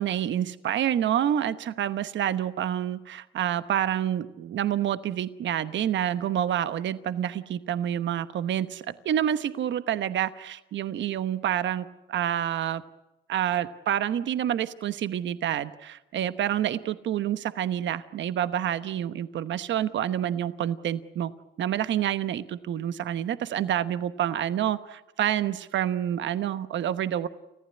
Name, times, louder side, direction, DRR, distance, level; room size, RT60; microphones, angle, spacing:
voice 1, 0.0-12.8 13.3-21.3 21.6-27.3, right 10 dB, 70° right, 13 dB, 1.1 m, -28 dB
30.0 x 15.0 x 9.7 m, 0.97 s
cardioid pair, 90°, 20 cm